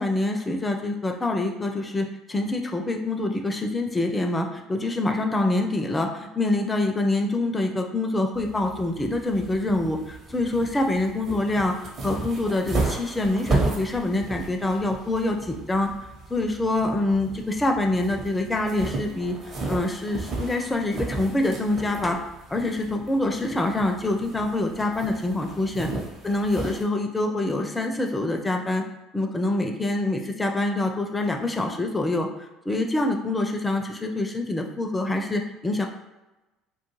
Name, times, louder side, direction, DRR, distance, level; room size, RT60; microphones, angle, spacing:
voice 1, 0.0-15.9 16.3-19.3 19.7-22.2 22.5-25.9 26.2-28.8 29.1-32.3 32.7-35.9, left 2 dB, 15° left, 4 dB, 0.4 m, -25 dB
sound 1, 8.3-26.8, right 3 dB, 45° right, 0.8 m, -34 dB
2.3 x 2.3 x 3.0 m, 1.0 s
figure-of-eight pair, 60°, 0 cm